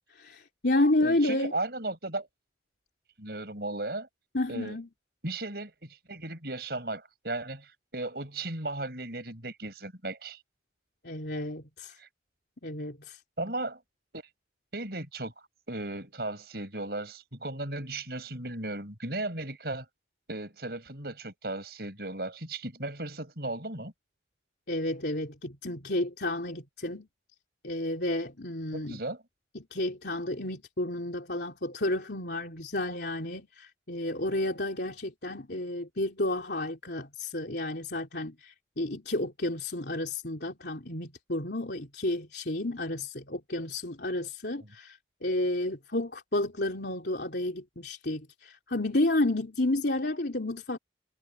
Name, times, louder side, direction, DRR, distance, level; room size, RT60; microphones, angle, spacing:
voice 1, 0.1-1.5 4.3-4.9 11.0-12.0 12.6-13.2 24.7-27.1 27.6-29.0 29.5-50.8, left 1 dB, 65° left, 3.3 m, -31 dB
voice 2, 1.0-2.3 3.2-4.1 4.5-4.8 5.2-10.4 12.0-12.1 13.4-13.8 14.7-15.3 15.7-19.8 20.3-23.9 28.7-29.2, right 2 dB, 55° right, 6.5 m, -36 dB
head